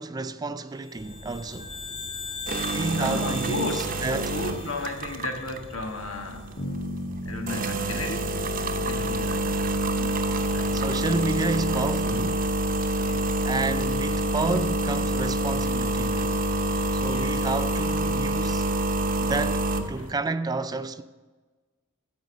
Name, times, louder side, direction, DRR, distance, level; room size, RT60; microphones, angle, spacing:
voice 1, 0.0-1.8 2.7-4.4 8.9-9.2 10.7-12.5 13.4-16.4 16.9-18.7 19.2-21.0, right 3 dB, 20° right, 0.3 m, -30 dB
sound 1, 0.8-5.4, left 5 dB, 25° left, 0.9 m, -39 dB
sound 2, 1.0-20.1, right 1 dB, 40° right, 0.8 m, -27 dB
voice 2, 2.6-6.6 7.2-8.5 8.9-10.9 13.0-13.4 16.1-16.2 16.8-17.5 18.4-18.6 20.0-20.1, left 2 dB, 90° left, 1.4 m, -35 dB
Bass guitar, 6.6-10.6, equal, 65° left, 2.8 m, -38 dB
15.0 x 5.2 x 6.2 m
head